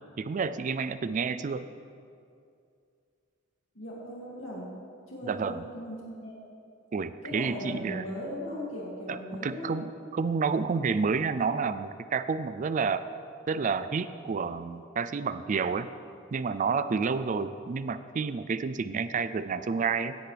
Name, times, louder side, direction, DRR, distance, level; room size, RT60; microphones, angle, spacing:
voice 1, 0.2-1.7 5.2-5.6 6.9-8.1 9.1-13.0 13.5-15.9 16.3-20.2, right 5 dB, 40° right, 13 dB, 0.4 m, -30 dB
voice 2, 3.7-4.7 5.1-6.4 7.2-9.8, equal, 75° left, -5 dB, 2.5 m, -38 dB
17.0 x 10.5 x 3.4 m, 2.4 s
head